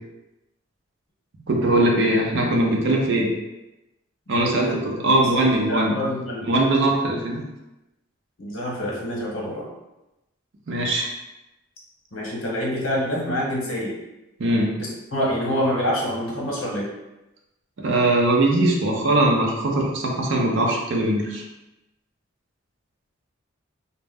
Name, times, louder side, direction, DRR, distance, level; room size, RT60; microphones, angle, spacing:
voice 1, 1.5-3.3 4.3-5.9 6.5-7.4 10.7-11.1 14.4-14.7 17.8-21.4, right 1 dB, 65° right, -1 dB, 0.5 m, -21 dB
voice 2, 4.3-4.7 5.7-6.5 8.4-9.7 12.1-13.9 15.1-16.9, equal, 80° left, -3 dB, 0.8 m, -26 dB
2.1 x 2.0 x 3.4 m, 0.97 s
head